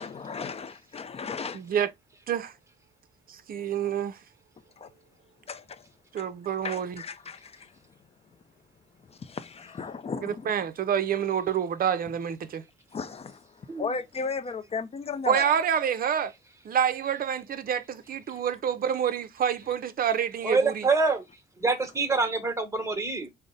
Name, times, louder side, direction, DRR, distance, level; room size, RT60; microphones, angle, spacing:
voice 1, 0.0-1.6 4.8-4.9 5.5-5.8 6.2-6.3 6.6-7.7 9.2-10.5 12.9-13.4 13.8-15.5, left 5 dB, 30° left, 0.5 m, -35 dB
voice 2, 1.5-1.9 2.3-2.5 3.3-4.1 6.1-7.0 10.2-12.6 15.3-16.3 16.6-20.8, right 8 dB, 45° right, 0.6 m, -27 dB
voice 3, 20.4-21.2 21.6-23.3, right 4 dB, 15° right, 1.1 m, -26 dB
3.8 x 2.1 x 3.7 m
cardioid pair, 90°, 20 cm